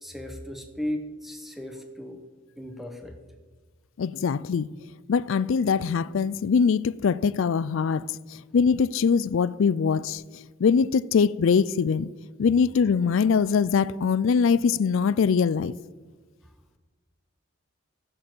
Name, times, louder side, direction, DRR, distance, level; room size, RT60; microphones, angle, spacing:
voice 1, 0.0-2.2 2.6-3.2, left 1 dB, ahead, 0.9 m, -35 dB
voice 2, 4.0-4.7 5.1-8.1 8.5-10.2 10.6-12.1 12.4-15.7, left 6 dB, 60° left, 0.3 m, -22 dB
11.5 x 6.8 x 7.8 m
head